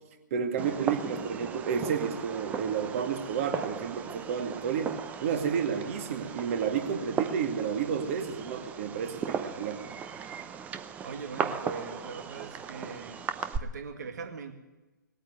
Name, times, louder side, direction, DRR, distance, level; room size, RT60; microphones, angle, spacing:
voice 1, 0.3-9.8, right 7 dB, 45° right, 5 dB, 2.1 m, -31 dB
Fireworks, 0.6-13.6, right 7 dB, 15° right, 0.7 m, -37 dB
voice 2, 11.0-13.3 13.6-14.5, right 5 dB, 60° right, 6 dB, 2.0 m, -41 dB
20.0 x 9.0 x 7.9 m, 1.1 s
figure-of-eight pair, 135°, 11 cm